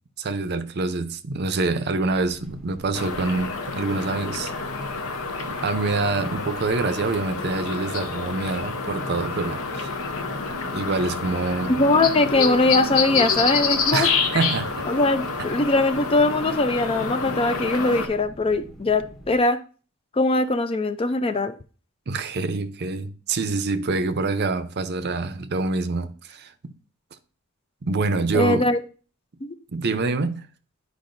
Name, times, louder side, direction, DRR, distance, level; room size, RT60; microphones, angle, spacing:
voice 1, 0.2-4.5 5.4-9.9 10.7-11.7 13.9-14.9 22.1-26.7 27.8-28.7 29.7-30.5, right 3 dB, 50° right, 0.6 m, -26 dB
sound 1, 2.0-19.4, right 1 dB, ahead, 0.7 m, -46 dB
sound 2, 2.9-18.1, left 4 dB, 70° left, 0.9 m, -28 dB
voice 2, 11.7-14.1 14.9-19.6 20.1-21.5 28.3-28.8 29.4-29.5, left 2 dB, 25° left, 0.4 m, -21 dB
10.5 x 4.8 x 2.6 m
head